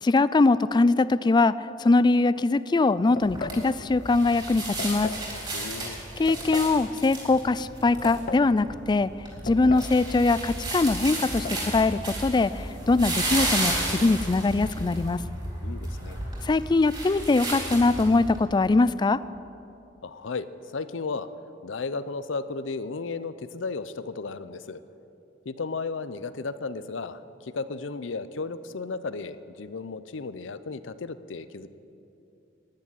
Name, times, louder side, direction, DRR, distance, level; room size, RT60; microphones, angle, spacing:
voice 1, 0.0-5.1 6.2-9.1 9.4-15.2 16.4-19.2, left 3 dB, 25° left, 17 dB, 0.3 m, -22 dB
sound 1, 3.2-3.7 4.8-5.3 6.3-6.8 7.8-8.5 9.5-10.0 10.2-10.3 11.2-11.6, left 3 dB, 50° left, 0.7 m, -36 dB
sound 2, 3.2-18.4, right 1 dB, 25° right, 4.0 m, -33 dB
voice 2, 5.5-6.0 15.6-16.2 20.0-21.3 21.6-24.8 25.5-31.7, left 4 dB, 90° left, 13 dB, 0.6 m, -34 dB
11.5 x 9.9 x 9.8 m, 2.8 s
head